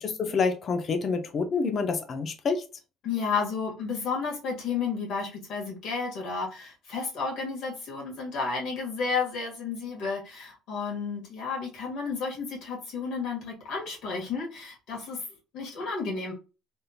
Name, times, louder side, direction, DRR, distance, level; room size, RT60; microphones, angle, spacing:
voice 1, 0.0-2.6, left 4 dB, 35° left, 0.6 m, -27 dB
voice 2, 3.0-15.2 15.5-16.3, left 5 dB, 65° left, 1.7 m, -32 dB
3.6 x 2.7 x 2.3 m
cardioid pair, 145°, 0 cm